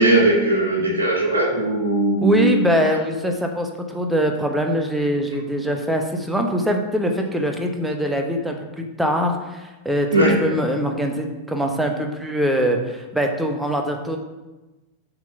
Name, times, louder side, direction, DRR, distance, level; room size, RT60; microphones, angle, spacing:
voice 1, 0.0-2.6 10.1-10.3, right 2 dB, 65° right, -6 dB, 1.7 m, -18 dB
voice 2, 2.2-14.2, equal, 5° right, 3 dB, 1.0 m, -23 dB
7.2 x 4.1 x 5.8 m, 1.1 s
figure-of-eight pair, 90°, 0 cm